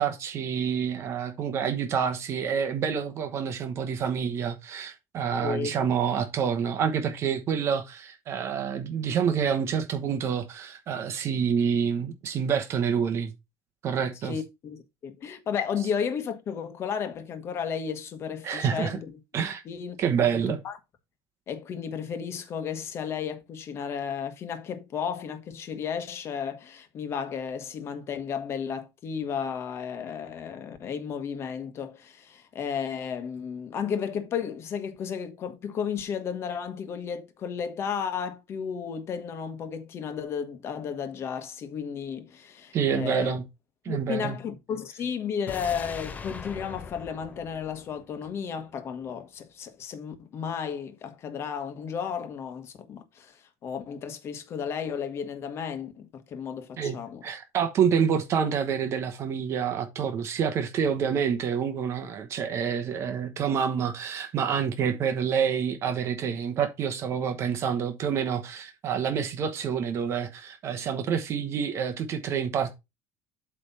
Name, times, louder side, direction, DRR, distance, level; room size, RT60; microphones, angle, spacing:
voice 1, 0.0-13.3 13.8-14.4 18.4-19.0 19.3-19.6 20.0-20.6 42.7-43.4 43.8-44.4 56.8-72.7, right 7 dB, 40° right, 1.0 m, -27 dB
voice 2, 5.4-5.7 14.2-19.2 19.6-20.8 21.5-43.4 43.9-57.2, left 7 dB, 35° left, 1.3 m, -33 dB
sound 1, 45.5-48.6 48.9-49.0, left 5 dB, 20° left, 0.7 m, -41 dB
8.0 x 3.3 x 5.4 m
cardioid pair, 145°, 7 cm